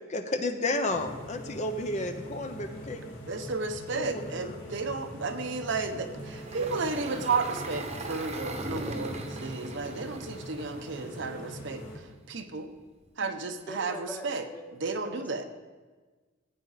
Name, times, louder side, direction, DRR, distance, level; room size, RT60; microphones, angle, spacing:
voice 1, 0.1-3.0 3.9-4.3, left 2 dB, 35° left, 7 dB, 0.7 m, -31 dB
sound 1, 0.9-12.0, equal, 70° left, 3.2 m, -43 dB
voice 2, 3.3-12.7 13.2-14.5 14.8-15.4, right 4 dB, 60° right, 7 dB, 0.8 m, -33 dB
Engine, 6.2-11.5, right 2 dB, 30° right, 1.0 m, -39 dB
voice 3, 13.7-14.3 14.5-14.6 15.0-15.4, equal, 10° left, 3 dB, 1.0 m, -42 dB
15.0 x 8.8 x 4.0 m, 1.3 s
head